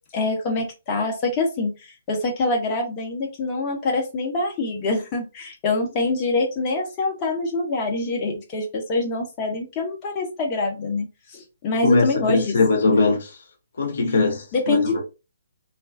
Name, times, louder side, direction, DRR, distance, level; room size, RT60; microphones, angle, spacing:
voice 1, 0.1-12.5 14.5-15.0, left 3 dB, 25° left, 0.7 m, -25 dB
voice 2, 11.8-13.4 13.8-14.8, left 3 dB, 55° left, 0.7 m, -20 dB
2.5 x 2.2 x 2.4 m
figure-of-eight pair, 130°, 0 cm